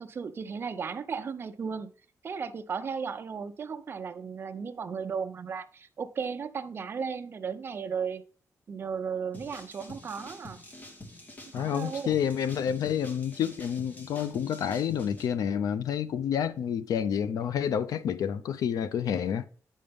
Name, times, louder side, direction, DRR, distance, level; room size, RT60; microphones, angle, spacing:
voice 1, 0.0-1.9 2.2-8.2 8.7-10.6 11.6-12.2, right 6 dB, 40° right, 0.5 m, -35 dB
sound 1, 9.3-15.3, left 1 dB, 25° left, 1.1 m, -47 dB
voice 2, 11.5-19.5, left 8 dB, 90° left, 0.4 m, -29 dB
8.6 x 5.4 x 3.4 m
wide cardioid pair, 180°, 6 cm